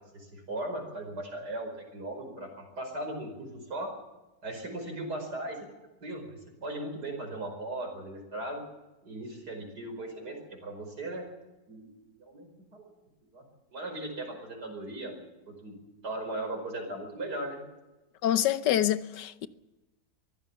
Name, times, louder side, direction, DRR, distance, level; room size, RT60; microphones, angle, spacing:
voice 1, 0.1-3.9 4.4-5.6 6.0-8.6 9.0-10.4 10.6-11.2 11.7-11.9 12.2-12.9 13.3-13.4 13.7-17.6, right 1 dB, 70° right, 5.6 m, -38 dB
voice 2, 18.2-19.5, left 11 dB, 85° left, 1.5 m, -26 dB
23.0 x 15.5 x 7.3 m
omnidirectional pair, 1.8 m